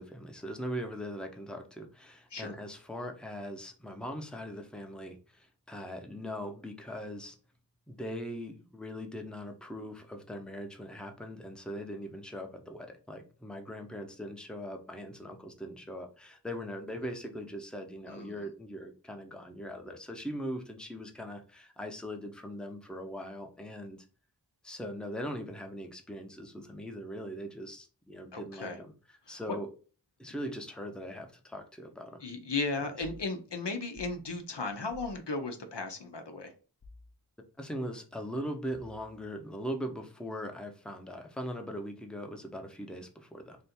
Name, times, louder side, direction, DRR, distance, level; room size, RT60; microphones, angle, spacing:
voice 1, 0.0-7.4 7.9-24.0 24.6-28.9 29.3-29.7 30.2-32.2 37.6-43.6, equal, ahead, 4 dB, 0.7 m, -40 dB
voice 2, 18.1-18.5 28.3-28.8 29.3-29.4 30.4-30.5 32.2-36.5, left 3 dB, 70° left, 6 dB, 0.8 m, -36 dB
sound 1, 33.0-33.3 33.9-34.2 34.9-35.2 36.8-37.1 38.7-39.2, left 2 dB, 35° left, 0.6 m, -51 dB
3.4 x 2.6 x 4.2 m, 0.36 s
wide cardioid pair, 40°, 43 cm